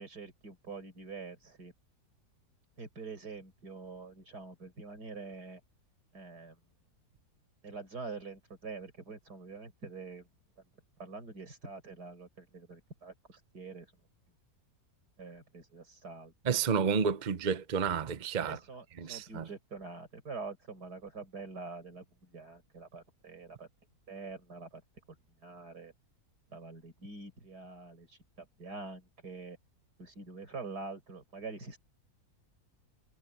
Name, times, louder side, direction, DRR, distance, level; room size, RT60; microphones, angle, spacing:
voice 1, 0.0-1.7 2.8-5.6 6.1-6.6 7.6-10.3 11.0-13.1 13.5-13.9 15.2-16.6 18.4-23.7 24.1-24.8 25.4-25.9 26.5-29.6 30.0-31.8, right 4 dB, 90° right, 5.5 m, -45 dB
voice 2, 16.4-18.6 19.0-19.5, right 6 dB, 35° right, 0.8 m, -30 dB
omnidirectional pair, 1.7 m